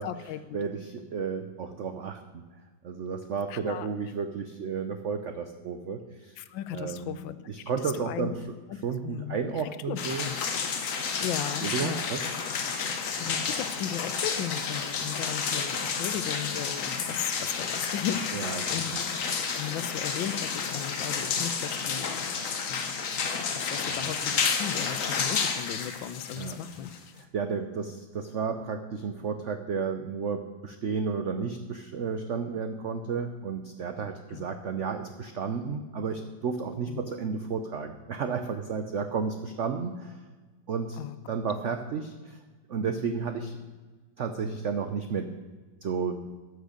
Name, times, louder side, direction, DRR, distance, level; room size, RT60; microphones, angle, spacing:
voice 1, 0.0-0.4 3.5-3.9 6.4-7.4 8.0-8.3 9.0-9.4 9.9-10.4 11.2-12.0 12.8-19.2 19.5-22.3 22.7-22.9 23.5-26.9 34.3-34.4 36.9-37.0 41.0-41.2, left 10 dB, 75° left, 13 dB, 1.4 m, -36 dB
voice 2, 0.5-2.2 2.8-6.4 6.7-7.2 7.5-8.6 8.8-10.3 11.6-12.3 15.0-15.2 18.3-19.0 23.8-24.1 26.4-26.6 27.2-40.2 40.7-41.0 41.3-42.4 42.7-43.6 44.2-45.3 45.8-46.2, right 5 dB, 85° right, 8 dB, 0.6 m, -32 dB
sound 1, 10.0-27.2, left 5 dB, 50° left, 1.1 m, -31 dB
13.0 x 6.4 x 6.5 m, 1.4 s
omnidirectional pair, 2.1 m